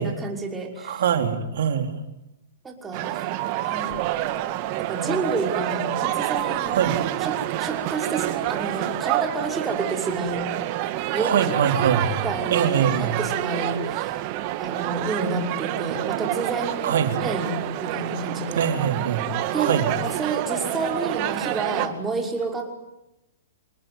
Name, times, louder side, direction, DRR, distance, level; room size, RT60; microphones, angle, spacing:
voice 1, 0.0-1.0 2.6-3.3 3.6-4.0 4.8-6.9 7.2-10.5 11.1-11.5 12.2-14.3 14.6-18.7 19.5-22.7, right 3 dB, 15° right, 2 dB, 5.6 m, -30 dB
voice 2, 0.8-2.0 6.6-7.0 11.2-12.1 12.5-13.2 16.8-17.1 18.6-19.3 19.5-19.9, right 8 dB, 65° right, 7 dB, 4.0 m, -23 dB
sound 1, 2.9-21.9, right 14 dB, 40° right, 2.3 m, -28 dB
28.0 x 20.0 x 9.6 m, 0.91 s
hypercardioid pair, 130°, 0 cm